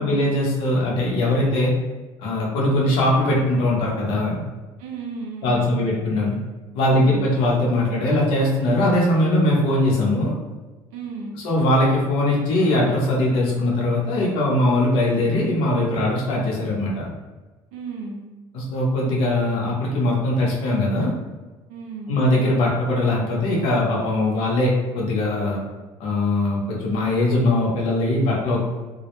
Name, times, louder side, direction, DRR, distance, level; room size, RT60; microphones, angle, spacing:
voice 1, 0.0-1.7 2.2-4.4 5.4-6.3 6.7-10.3 11.4-17.1 18.5-21.1 22.1-24.7 24.9-25.6 26.0-28.6, left 1 dB, 75° left, -4 dB, 0.8 m, -21 dB
voice 2, 4.8-6.1 6.8-7.3 10.9-11.4 17.7-18.3 21.7-22.2, right 4 dB, 90° right, 1 dB, 0.4 m, -34 dB
2.2 x 2.1 x 2.9 m, 1.2 s
cardioid pair, 120°, 10 cm